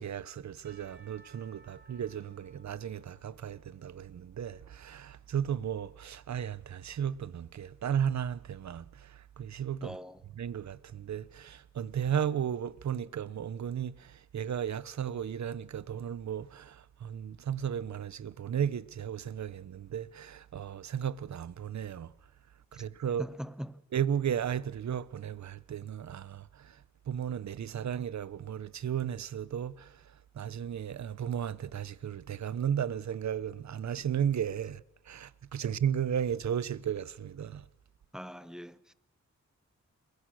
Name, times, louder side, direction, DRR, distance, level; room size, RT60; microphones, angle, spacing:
voice 1, 0.0-10.0 10.4-22.1 22.7-23.2 23.9-26.8 27.1-30.0 30.3-34.8 35.1-37.6, right 9 dB, 70° right, 1.0 m, -34 dB
Percussion / Church bell, 0.6-4.6, right 2 dB, 35° right, 7.3 m, -61 dB
voice 2, 9.8-10.2 22.7-22.8 23.2-23.8 38.1-38.9, equal, ahead, 1.0 m, -42 dB
28.5 x 21.5 x 6.5 m
wide cardioid pair, 125°, 29 cm